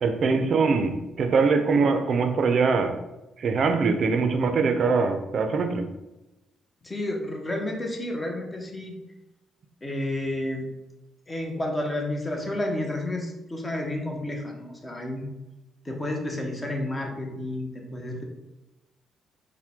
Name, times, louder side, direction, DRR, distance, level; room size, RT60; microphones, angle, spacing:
voice 1, 0.0-2.9 3.4-5.9, right 4 dB, 55° right, 7 dB, 0.5 m, -23 dB
voice 2, 6.8-9.0 9.8-10.7 11.3-15.3 15.8-18.2, left 1 dB, 20° left, 1 dB, 0.9 m, -31 dB
4.4 x 2.2 x 3.5 m, 1.0 s
cardioid pair, 90°, 0 cm